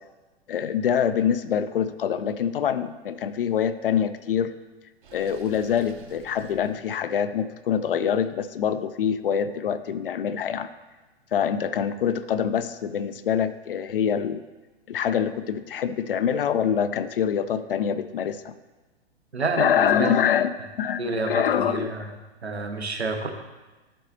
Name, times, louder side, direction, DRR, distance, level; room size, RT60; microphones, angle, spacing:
voice 1, 0.5-4.5 5.1-10.7 11.3-14.4 14.9-18.5 19.6-20.5 20.8-22.1, left 8 dB, 60° left, 12 dB, 0.5 m, -25 dB
Water / Sink (filling or washing), 5.0-6.8, right 4 dB, 50° right, 0.8 m, -48 dB
voice 2, 19.3-20.1 20.6-20.7 21.0-22.1 22.4-23.3, right 3 dB, 80° right, 5 dB, 0.9 m, -29 dB
11.0 x 4.0 x 2.7 m, 1.2 s
figure-of-eight pair, 115°, 32 cm